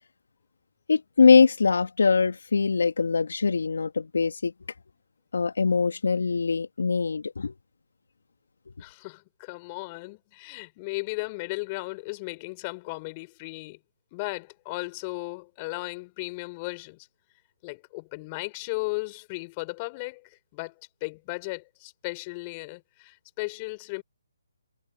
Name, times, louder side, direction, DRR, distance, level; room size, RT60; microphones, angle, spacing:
voice 1, 0.9-4.5 5.3-7.5, left 5 dB, 70° left, 1.7 m, -22 dB
voice 2, 8.8-13.8 14.1-17.1 17.6-20.7 21.0-24.0, left 26 dB, 25° left, 4.5 m, -36 dB
figure-of-eight pair, 150°, 0 cm